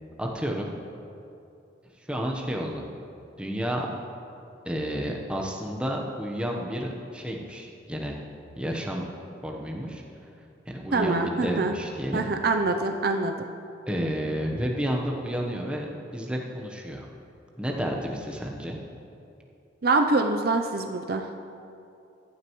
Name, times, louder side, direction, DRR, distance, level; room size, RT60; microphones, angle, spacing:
voice 1, 0.2-0.8 2.0-2.9 3.4-4.0 4.6-8.2 8.6-9.1 9.4-10.0 10.7-12.2 13.9-17.1 17.6-18.8, equal, 5° right, -1 dB, 0.9 m, -31 dB
voice 2, 10.9-11.7 12.1-13.3 19.8-21.3, right 3 dB, 50° right, 5 dB, 0.5 m, -25 dB
15.0 x 11.5 x 3.1 m, 2.7 s
head